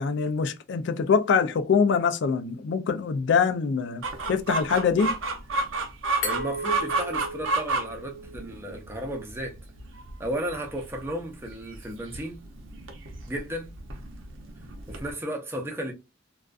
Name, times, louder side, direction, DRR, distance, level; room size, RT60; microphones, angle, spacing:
voice 1, 0.0-5.2, left 5 dB, 60° left, 0.3 m, -24 dB
Chicken rooster, 4.0-15.1, right 3 dB, 75° right, 0.6 m, -32 dB
Glass, 6.2-9.0, equal, 75° left, 0.9 m, -36 dB
voice 2, 6.2-9.6 10.2-12.4 13.3-13.7 14.9-15.9, right 1 dB, 10° right, 0.5 m, -34 dB
2.5 x 2.3 x 2.3 m
head